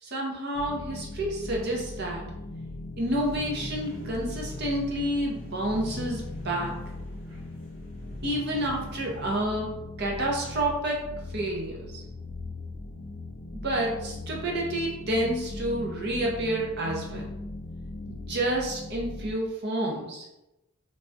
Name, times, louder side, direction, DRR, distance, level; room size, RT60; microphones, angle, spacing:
voice 1, 0.0-2.3 3.0-6.8 8.2-11.0 11.3-12.0 13.6-17.3 18.1-20.2, right 1 dB, 50° right, -1 dB, 0.6 m, -29 dB
sound 1, 0.5-19.3, left 2 dB, 55° left, 0.4 m, -39 dB
sound 2, 3.1-9.3, left 1 dB, 25° right, 0.9 m, -44 dB
3.3 x 2.2 x 2.6 m, 0.94 s
head